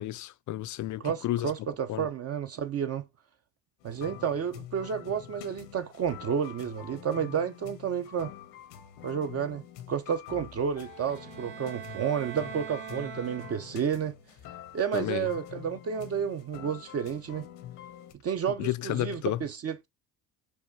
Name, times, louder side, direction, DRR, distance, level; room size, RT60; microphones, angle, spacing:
voice 1, 0.0-1.5 1.9-2.1 14.9-15.3 18.6-19.4, left 14 dB, 50° left, 0.5 m, -31 dB
voice 2, 1.0-3.1 3.8-8.3 9.0-14.2 14.7-17.5 18.2-19.9, right 7 dB, 40° right, 0.7 m, -31 dB
sound 1, 3.8-18.1, left 11 dB, 80° left, 0.9 m, -46 dB
sound 2, 10.8-14.0, right 9 dB, 70° right, 0.9 m, -43 dB
4.9 x 2.4 x 4.5 m
supercardioid pair, 70°, 37 cm